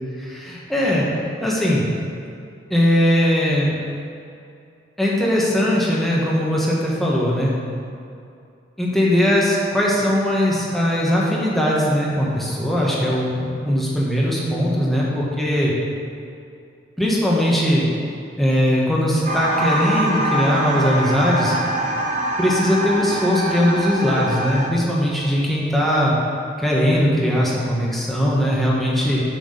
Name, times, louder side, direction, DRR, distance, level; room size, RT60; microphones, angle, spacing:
voice 1, 0.2-1.1 1.4-1.8 2.7-3.8 5.0-7.5 8.8-15.7 17.0-17.9 18.4-21.5 22.4-26.1 26.6-29.2, equal, ahead, -6 dB, 1.7 m, -20 dB
sound 1, 19.2-24.7, right 1 dB, 40° right, 1.0 m, -24 dB
7.8 x 6.4 x 6.7 m, 2.5 s
head